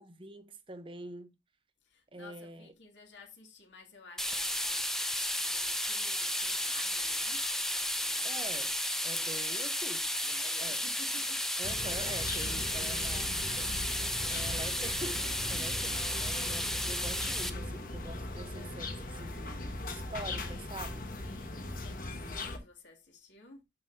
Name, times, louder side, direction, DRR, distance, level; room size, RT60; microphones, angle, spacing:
voice 1, 0.0-1.3 2.1-2.7 8.2-10.8 11.6-13.3 14.3-21.1 22.2-22.4, right 2 dB, 30° right, 0.9 m, -45 dB
voice 2, 1.8-8.6 9.1-9.7 10.0-11.5 12.4-13.8 15.5-15.8 21.2-23.6, left 3 dB, 80° left, 2.7 m, -54 dB
sound 1, 4.2-17.5, left 1 dB, ahead, 0.6 m, -33 dB
sound 2, 11.6-22.6, left 2 dB, 50° left, 1.4 m, -39 dB
11.5 x 5.4 x 2.8 m
head